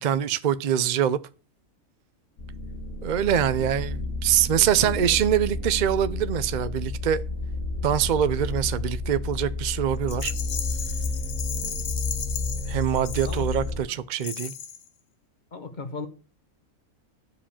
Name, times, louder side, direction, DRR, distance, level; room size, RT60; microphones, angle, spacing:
voice 1, 0.0-1.2 3.0-7.2 7.8-10.3 11.5-11.7 12.7-14.5, right 9 dB, 65° right, 0.4 m, -24 dB
sound 1, 2.4-13.8, left 2 dB, 65° left, 1.8 m, -31 dB
voice 2, 4.6-5.2 13.2-13.4 13.8-14.0 15.5-16.1, left 4 dB, 35° left, 1.1 m, -37 dB
Rattle, 10.1-13.7 14.2-14.9, left 8 dB, 90° left, 1.4 m, -35 dB
11.0 x 5.1 x 7.1 m
omnidirectional pair, 1.5 m